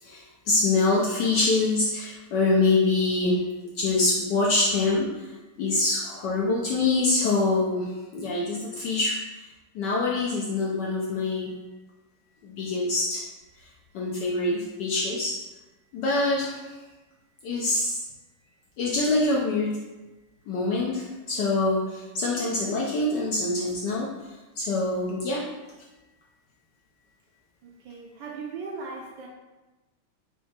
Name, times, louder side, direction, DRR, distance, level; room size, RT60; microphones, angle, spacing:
voice 1, 0.0-3.4 3.7-5.3 5.6-9.2 9.7-11.5 12.4-13.3 13.9-15.4 15.9-16.7 17.4-18.0 18.8-19.8 20.5-25.5, left 2 dB, 75° left, -3 dB, 1.0 m, -25 dB
voice 2, 27.6-29.3, right 4 dB, 75° right, -1 dB, 1.1 m, -38 dB
4.3 x 2.8 x 4.3 m, 1.1 s
omnidirectional pair, 2.4 m